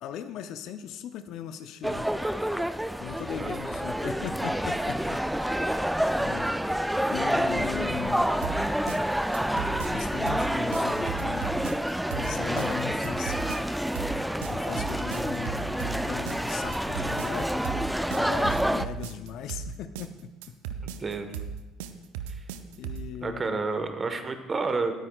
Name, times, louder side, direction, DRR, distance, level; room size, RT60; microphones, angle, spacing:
voice 1, 0.0-2.1 3.0-5.5 6.2-6.6 7.1-8.3 9.9-11.7 12.1-13.4 14.5-20.3 22.8-23.6, left 9 dB, 60° left, 10 dB, 0.6 m, -38 dB
sound 1, 1.8-18.9, equal, 5° right, 0.4 m, -28 dB
sound 2, 8.4-23.1, right 8 dB, 75° right, 0.5 m, -36 dB
voice 2, 23.2-24.9, right 4 dB, 30° right, 8 dB, 1.3 m, -29 dB
17.5 x 9.6 x 2.4 m, 1.1 s
hypercardioid pair, 55°, 0 cm